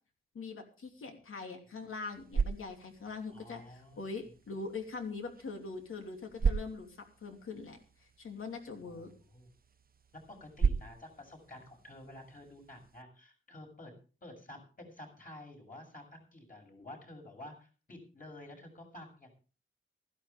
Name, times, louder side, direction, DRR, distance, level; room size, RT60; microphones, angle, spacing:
voice 1, 0.3-9.1, left 4 dB, 85° left, 3 dB, 3.0 m, -42 dB
sound 1, 1.9-13.0, right 5 dB, 45° right, 0.8 m, -38 dB
voice 2, 3.3-4.0 8.8-9.5 10.1-13.9 14.2-19.3, left 1 dB, 40° left, 2 dB, 7.2 m, -51 dB
16.5 x 14.5 x 3.5 m, 0.37 s
wide cardioid pair, 100°, 21 cm